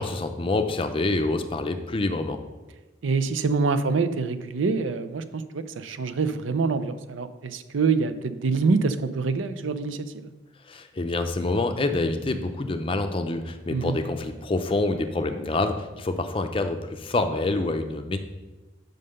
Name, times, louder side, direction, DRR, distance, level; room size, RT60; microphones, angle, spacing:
voice 1, 0.0-2.4 10.6-18.2, left 2 dB, 30° left, 6 dB, 0.5 m, -27 dB
voice 2, 3.0-10.3 13.7-14.0, right 4 dB, 85° right, 11 dB, 0.5 m, -26 dB
5.7 x 5.3 x 6.5 m, 1.2 s
head